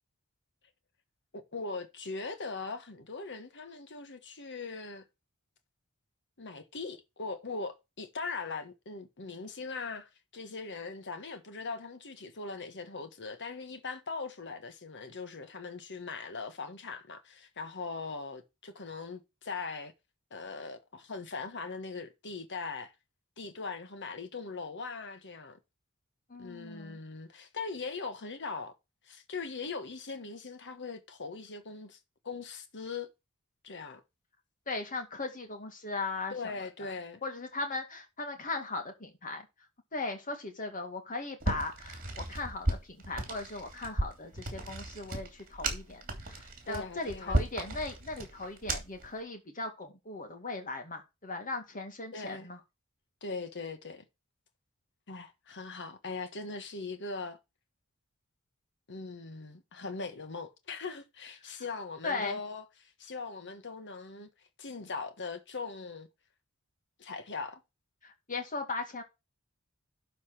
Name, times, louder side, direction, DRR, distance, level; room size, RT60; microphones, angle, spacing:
voice 1, 1.3-5.0 6.4-19.9 20.3-22.9 23.4-25.6 26.4-28.7 29.1-32.0 32.2-33.1 33.6-34.0 36.3-37.2 46.7-47.4 52.1-52.5 53.2-54.0 55.1-57.4 58.9-64.3 64.6-66.1 67.0-67.6, left 4 dB, 55° left, 1.4 m, -40 dB
voice 2, 26.3-27.0 34.7-36.9 37.2-39.5 39.9-52.6 62.0-62.4 68.0-69.0, left 3 dB, 40° left, 2.2 m, -38 dB
sound 1, 41.4-49.1, right 1 dB, 40° right, 2.9 m, -35 dB
12.0 x 4.1 x 5.9 m
head